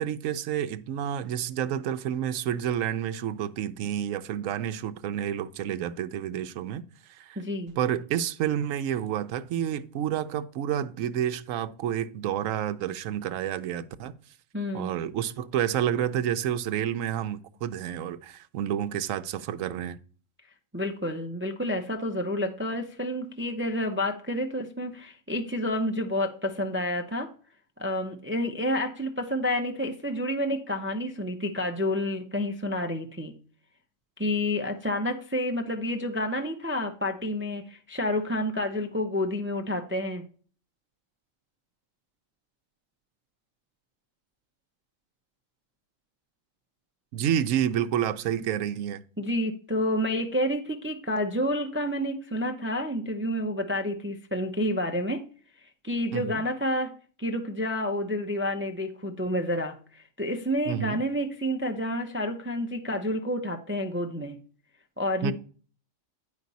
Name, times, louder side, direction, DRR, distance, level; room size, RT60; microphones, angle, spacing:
voice 1, 0.0-6.8 7.1-7.4 7.8-14.1 14.7-20.0 47.1-49.0 56.1-56.4 60.7-61.0 65.2-65.3, right 10 dB, 75° right, 1.0 m, -29 dB
voice 2, 7.4-7.7 14.5-14.9 20.7-27.3 27.8-33.3 34.2-40.2 49.2-55.2 55.8-56.9 57.2-64.4 65.0-65.3, left 1 dB, 15° right, 0.4 m, -29 dB
9.4 x 5.1 x 4.0 m
omnidirectional pair, 1.4 m